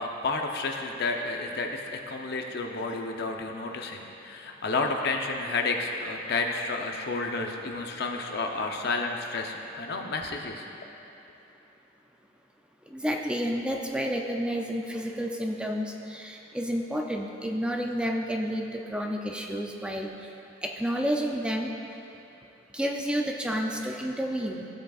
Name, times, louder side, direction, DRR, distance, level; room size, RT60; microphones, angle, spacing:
voice 1, 0.0-10.6, left 3 dB, 60° left, 3 dB, 0.7 m, -31 dB
voice 2, 12.9-20.1 20.6-21.7 22.7-24.7, equal, 5° right, 1 dB, 0.5 m, -30 dB
15.0 x 7.7 x 2.4 m, 2.8 s
head